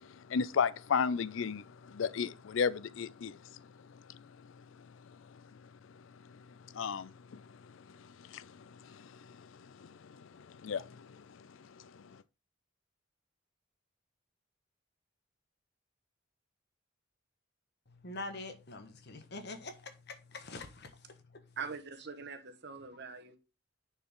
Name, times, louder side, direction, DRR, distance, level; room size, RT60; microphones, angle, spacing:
voice 1, 0.3-3.4 6.7-7.4 8.2-9.5 9.8-9.9 10.2-11.2 11.9-12.0, left 6 dB, 75° left, 0.4 m, -34 dB
voice 2, 18.0-21.5, left 2 dB, 55° left, 1.3 m, -45 dB
voice 3, 21.6-23.4, right 5 dB, 55° right, 1.3 m, -43 dB
9.7 x 4.6 x 3.7 m
head